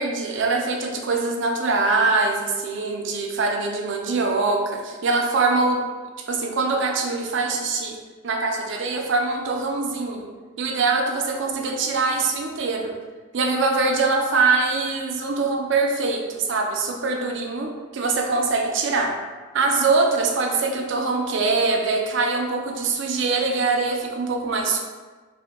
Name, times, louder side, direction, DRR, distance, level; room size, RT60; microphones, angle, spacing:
voice 1, 0.0-5.9 6.3-8.0 8.2-10.3 10.6-13.0 13.3-19.2 19.5-24.8, right 3 dB, 65° right, 2 dB, 0.4 m, -23 dB
2.8 x 2.2 x 3.5 m, 1.3 s
head